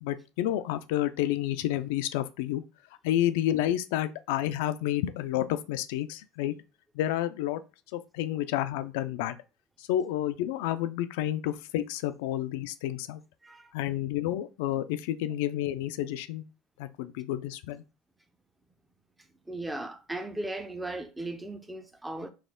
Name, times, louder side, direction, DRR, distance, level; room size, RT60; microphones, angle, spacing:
voice 1, 0.0-2.6 3.0-6.5 6.9-7.6 7.9-9.4 9.8-13.2 13.7-16.4 16.8-17.8, left 13 dB, 75° left, 0.4 m, -30 dB
voice 2, 13.4-13.7 19.5-22.3, right 2 dB, 5° right, 0.6 m, -37 dB
4.2 x 2.4 x 3.7 m
supercardioid pair, 115°, 0 cm